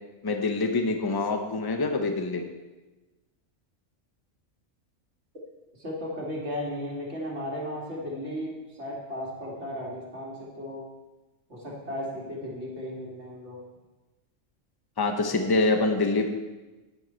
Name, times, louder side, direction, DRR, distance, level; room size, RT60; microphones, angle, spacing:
voice 1, 0.2-2.4 15.0-16.3, left 3 dB, 20° left, 5 dB, 0.8 m, -25 dB
voice 2, 5.8-10.8 11.5-13.6, left 1 dB, 60° right, -3 dB, 2.6 m, -35 dB
10.5 x 9.6 x 4.5 m, 1.2 s
omnidirectional pair, 1.3 m